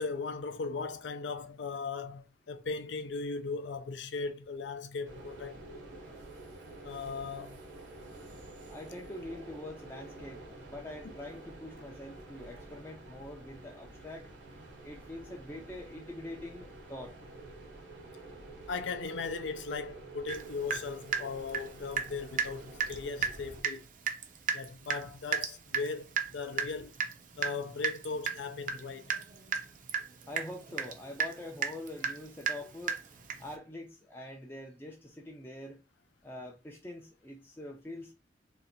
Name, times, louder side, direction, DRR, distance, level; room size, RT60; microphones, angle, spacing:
voice 1, 0.0-5.6 6.8-7.6 18.7-23.8 24.5-26.9 27.4-29.0, left 4 dB, 85° left, 0.6 m, -38 dB
sound 1, 5.0-23.6, right 2 dB, 80° right, 1.0 m, -49 dB
voice 2, 8.7-14.3 14.8-17.1 30.3-33.0 33.4-35.8 36.2-38.1, left 1 dB, 15° left, 0.5 m, -44 dB
Water tap faucet / Drip, 20.3-20.4 20.7-22.1 22.4-22.5 22.8-23.0 23.2-23.4 23.6-23.8 24.1-33.5, right 7 dB, 45° right, 0.5 m, -34 dB
2.7 x 2.5 x 4.1 m
head